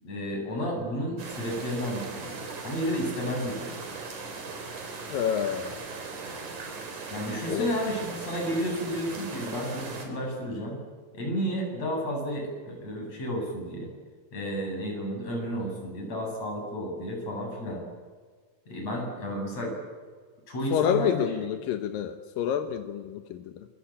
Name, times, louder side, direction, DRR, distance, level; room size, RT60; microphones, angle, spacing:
voice 1, 0.0-3.8 7.1-10.8 11.1-13.9 14.3-17.8 18.7-19.8 20.5-21.5, equal, 50° left, 1 dB, 9.1 m, -32 dB
the sound of big stream in the mountains - front, 1.2-10.1, right 4 dB, 60° right, 5.2 m, -39 dB
voice 2, 5.1-5.8 7.5-7.7 20.7-23.7, left 9 dB, 85° left, 7 dB, 2.9 m, -28 dB
26.0 x 23.5 x 8.8 m, 1.5 s
omnidirectional pair, 3.9 m